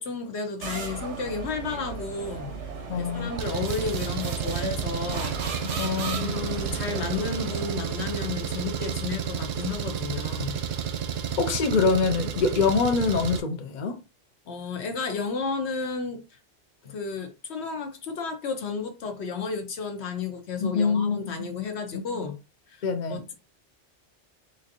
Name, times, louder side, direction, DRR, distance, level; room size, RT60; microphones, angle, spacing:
voice 1, 0.0-2.5 2.9-5.8 6.2-10.6 14.5-16.4 16.8-22.4 22.7-22.8 23.1-23.3, left 5 dB, 70° left, 1.1 m, -32 dB
sound 1, 0.6-8.0, right 4 dB, 85° right, 1.2 m, -36 dB
voice 2, 2.9-3.3 5.6-6.3 11.4-13.9 20.6-21.2 22.8-23.2, left 4 dB, 50° left, 0.6 m, -24 dB
Engine, 3.4-13.4, right 8 dB, 65° right, 0.8 m, -31 dB
4.2 x 2.6 x 2.7 m
omnidirectional pair, 1.2 m